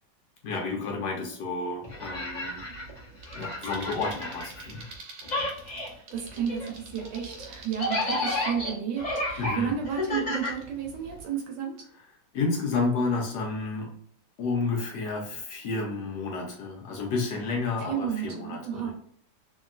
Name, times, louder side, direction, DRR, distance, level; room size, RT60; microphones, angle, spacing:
voice 1, 0.4-2.6 3.3-4.8 9.4-9.7 12.3-14.0 14.4-18.9, left 3 dB, 70° left, 0 dB, 1.1 m, -30 dB
sound 1, 1.8-5.0 5.2-11.2, left 1 dB, 45° left, 0.5 m, -32 dB
sound 2, 3.2-8.2, right 3 dB, 85° right, 1.5 m, -47 dB
voice 2, 6.1-11.7 17.8-18.9, right 8 dB, 70° right, 1 dB, 1.2 m, -32 dB
3.0 x 2.7 x 2.4 m, 0.63 s
omnidirectional pair, 2.1 m